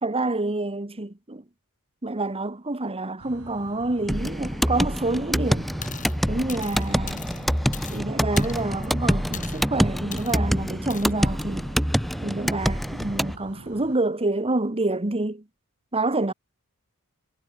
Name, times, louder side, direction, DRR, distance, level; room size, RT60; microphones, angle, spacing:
voice 1, 0.0-1.4 2.0-5.7 6.3-7.3 7.9-11.7 12.2-15.5 15.9-16.3, right 2 dB, 25° right, 1.4 m, -27 dB
sound 1, 3.2-14.0, right 1 dB, 75° right, 4.0 m, -45 dB
sound 2, 4.1-13.4, equal, ahead, 1.8 m, -26 dB
sound 3, 5.8-6.2 6.5-8.0 8.4-8.9 9.3-9.6 10.1-10.3 10.9-11.1, left 9 dB, 35° left, 5.2 m, -39 dB
head